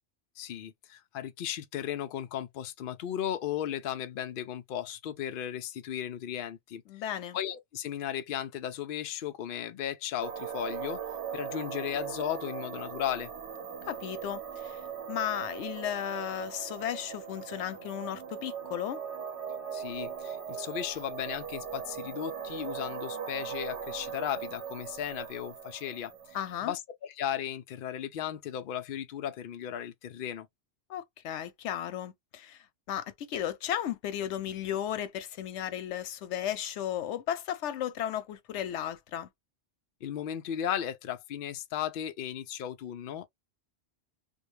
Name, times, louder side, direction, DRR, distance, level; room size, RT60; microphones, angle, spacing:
voice 1, 0.4-6.8 7.3-11.0 11.3-13.3 19.7-26.4 26.6-30.5 40.0-43.2, left 10 dB, 60° left, 0.6 m, -35 dB
voice 2, 6.9-7.4 13.9-14.8 15.1-19.0 26.3-26.7 30.9-32.6 32.9-39.3, left 10 dB, 90° left, 0.9 m, -35 dB
sound 1, 10.2-26.6, right 7 dB, 90° right, 1.2 m, -39 dB
2.3 x 2.2 x 3.0 m
omnidirectional pair, 1.2 m